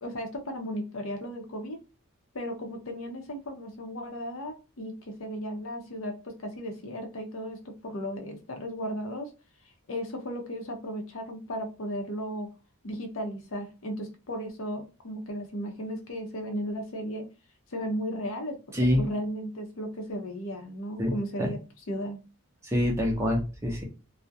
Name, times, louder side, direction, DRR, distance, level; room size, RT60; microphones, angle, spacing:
voice 1, 0.0-1.8 2.3-9.3 9.9-12.5 12.8-17.3 17.7-18.6 19.0-21.6 21.9-22.2, equal, 65° left, 4 dB, 0.6 m, -35 dB
voice 2, 22.6-23.8, left 1 dB, 10° right, 0 dB, 0.5 m, -25 dB
2.3 x 2.0 x 2.6 m, 0.32 s
head